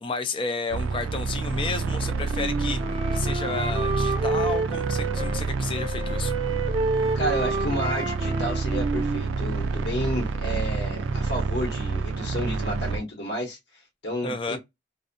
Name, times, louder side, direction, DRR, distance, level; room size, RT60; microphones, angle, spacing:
voice 1, 0.0-6.3 14.2-14.6, left 4 dB, 25° left, 0.3 m, -32 dB
sound 1, 0.7-13.0, right 3 dB, 90° right, 0.3 m, -28 dB
Wind instrument woodwind instrument, 1.9-5.4 5.7-9.8, right 3 dB, 30° right, 0.5 m, -30 dB
voice 2, 7.1-13.6 14.0-14.6, equal, 60° left, 0.9 m, -31 dB
2.6 x 2.0 x 2.5 m
head